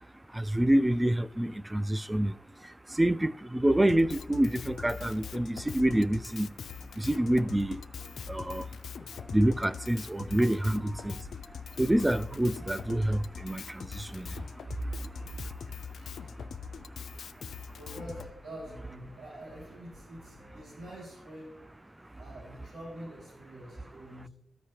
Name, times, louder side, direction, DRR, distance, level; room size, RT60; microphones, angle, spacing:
voice 1, 0.3-2.3 2.9-6.5 7.0-7.8 8.3-8.7 9.3-11.2 11.8-14.3, right 1 dB, 15° right, 0.3 m, -27 dB
Drum kit, 3.9-18.3, left 7 dB, 75° left, 0.3 m, -43 dB
sound 1, 5.0-20.7, equal, 45° right, 1.6 m, -56 dB
voice 2, 16.0-16.3 17.7-21.6 22.2-24.3, right 1 dB, 85° right, 2.4 m, -46 dB
13.5 x 4.8 x 2.9 m
cardioid pair, 60°, 0 cm